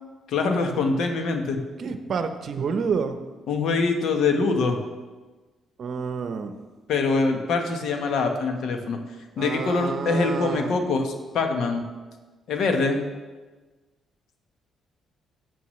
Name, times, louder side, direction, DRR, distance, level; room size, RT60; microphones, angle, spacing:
voice 1, 0.3-1.6 3.5-4.8 6.9-9.0 9.4-11.8 12.5-13.0, left 4 dB, 75° left, 4 dB, 1.2 m, -24 dB
voice 2, 1.8-3.2 5.8-6.5 9.4-10.8, right 5 dB, 60° right, 8 dB, 0.8 m, -29 dB
13.0 x 8.0 x 3.2 m, 1.3 s
cardioid pair, 90°, 0 cm